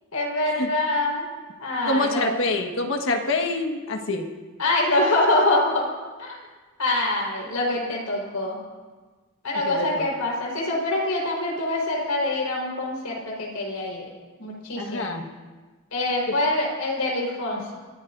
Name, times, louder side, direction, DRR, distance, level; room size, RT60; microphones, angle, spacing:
voice 1, 0.1-1.3 1.6-2.3 4.6-5.9 6.2-6.4 6.8-8.6 9.4-14.0 14.4-15.2 15.9-17.8, left 2 dB, 85° left, -2 dB, 4.5 m, -25 dB
voice 2, 1.9-4.3 9.6-10.1 14.8-15.3 16.3-16.4, left 2 dB, 60° left, 4 dB, 1.5 m, -26 dB
29.0 x 14.5 x 2.6 m, 1.3 s
head